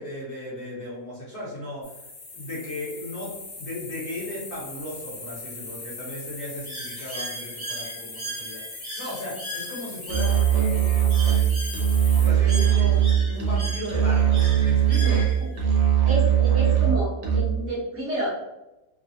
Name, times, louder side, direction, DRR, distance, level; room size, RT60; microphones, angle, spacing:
voice 1, 0.0-1.8 2.3-3.3 3.6-11.0 12.1-13.0 13.3-15.2, left 1 dB, 50° left, -7 dB, 1.0 m, -36 dB
sound 1, 1.8-12.3, left 3 dB, 65° left, 1.3 m, -40 dB
Bird, 6.7-15.6, right 1 dB, 35° right, 0.6 m, -38 dB
Musical instrument, 10.1-17.7, right 9 dB, 85° right, 1.3 m, -20 dB
voice 2, 15.0-15.8 16.1-18.5, right 1 dB, 50° right, -7 dB, 1.1 m, -30 dB
3.0 x 2.3 x 2.7 m, 0.97 s
omnidirectional pair, 1.8 m